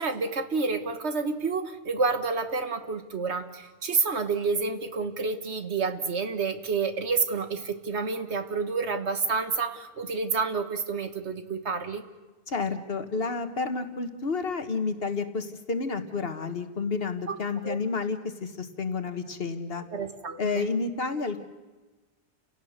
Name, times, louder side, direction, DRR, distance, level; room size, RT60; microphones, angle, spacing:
voice 1, 0.0-12.0 17.3-17.4 17.6-17.8 19.9-20.7, right 4 dB, 75° right, 8 dB, 1.8 m, -29 dB
voice 2, 12.5-19.8 20.4-21.4, left 4 dB, 60° left, 9 dB, 1.6 m, -30 dB
30.0 x 17.5 x 6.6 m, 1.2 s
omnidirectional pair, 1.2 m